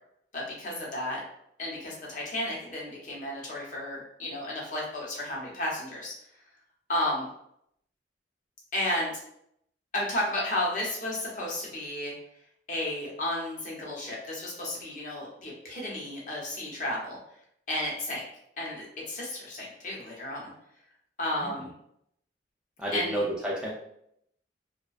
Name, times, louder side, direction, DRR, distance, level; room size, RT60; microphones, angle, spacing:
voice 1, 0.3-1.2 1.6-6.1 6.9-7.3 8.7-9.1 9.9-12.1 12.7-17.2 17.7-18.2 18.6-20.5 21.2-21.7 22.9-23.2, left 1 dB, 45° left, -4 dB, 0.8 m, -32 dB
voice 2, 22.8-23.7, right 1 dB, 5° right, -5 dB, 0.3 m, -31 dB
2.3 x 2.2 x 2.4 m, 0.73 s
head